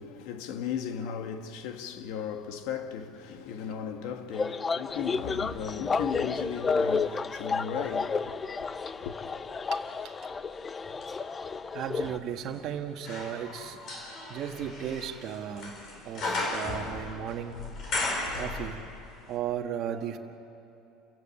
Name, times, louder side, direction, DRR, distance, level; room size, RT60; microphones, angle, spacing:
voice 1, 0.0-9.2, left 7 dB, 70° left, 1.7 m, -36 dB
sound 1, 4.3-12.2, left 4 dB, 20° left, 0.5 m, -31 dB
sound 2, 5.0-7.2 7.7-19.1 19.3-19.4, left 2 dB, 45° left, 5.4 m, -38 dB
voice 2, 9.7-10.1 11.2-11.3 11.7-13.8 14.3-15.8 16.0-17.7 18.3-18.8 19.3-20.2, right 9 dB, 50° right, 1.6 m, -35 dB
29.0 x 16.0 x 8.5 m
cardioid pair, 140°, 0 cm